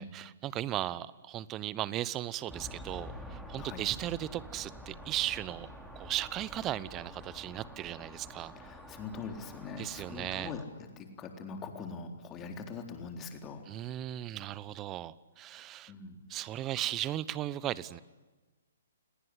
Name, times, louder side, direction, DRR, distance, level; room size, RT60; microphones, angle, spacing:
voice 1, 0.0-5.7 6.0-8.5 9.8-10.5 13.7-15.9 16.3-18.0, right 13 dB, 25° right, 20 dB, 0.9 m, -36 dB
sound 1, 2.5-10.6, equal, ahead, 3.2 m, -47 dB
voice 2, 8.5-10.7 11.0-13.6 15.9-16.2, left 5 dB, 20° left, 5 dB, 3.8 m, -42 dB
29.0 x 19.0 x 10.0 m, 1.2 s
figure-of-eight pair, 125°, 0 cm